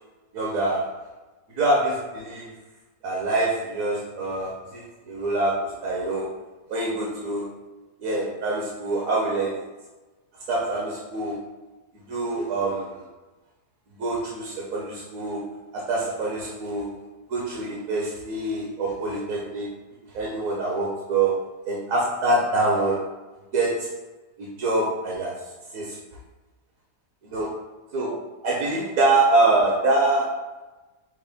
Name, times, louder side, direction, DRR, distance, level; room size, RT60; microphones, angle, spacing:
voice 1, 0.3-1.0 1.6-2.5 3.0-6.3 6.7-7.5 8.0-9.6 10.5-11.4 12.1-13.0 14.0-16.9 17.3-19.7 20.1-23.1 23.5-23.9 24.4-25.5 25.7-26.0 27.2-27.5 27.9-30.4, right 2 dB, 60° right, -3 dB, 1.2 m, -25 dB
6.3 x 2.2 x 3.5 m, 1.2 s
omnidirectional pair, 1.7 m